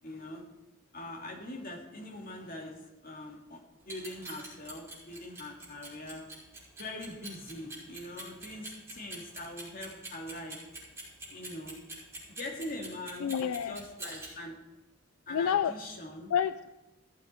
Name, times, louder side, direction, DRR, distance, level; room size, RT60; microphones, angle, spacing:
voice 1, 0.0-0.4 0.9-6.2 6.8-10.6 11.3-11.8 12.4-14.6 15.3-16.3, left 1 dB, 40° left, 0 dB, 2.1 m, -42 dB
Clock, 3.8-14.3, right 2 dB, 10° right, 5.2 m, -44 dB
voice 2, 13.2-13.8 15.3-15.7 16.3-16.7, left 8 dB, 75° left, 13 dB, 0.3 m, -29 dB
16.0 x 7.8 x 4.4 m, 1.0 s
head